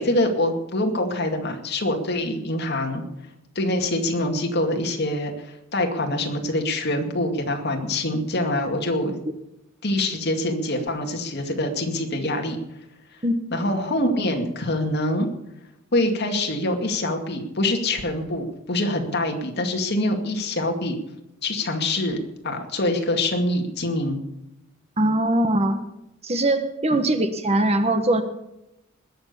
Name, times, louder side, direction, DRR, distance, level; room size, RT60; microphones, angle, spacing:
voice 1, 0.0-3.0 3.6-9.2 9.8-12.6 13.5-15.3 15.9-21.0 21.4-22.2 22.4-24.2 26.9-27.0, left 1 dB, 55° left, 3 dB, 2.2 m, -25 dB
voice 2, 25.0-25.8 26.2-28.2, right 1 dB, 30° right, 9 dB, 1.1 m, -21 dB
21.0 x 7.0 x 6.8 m, 0.89 s
head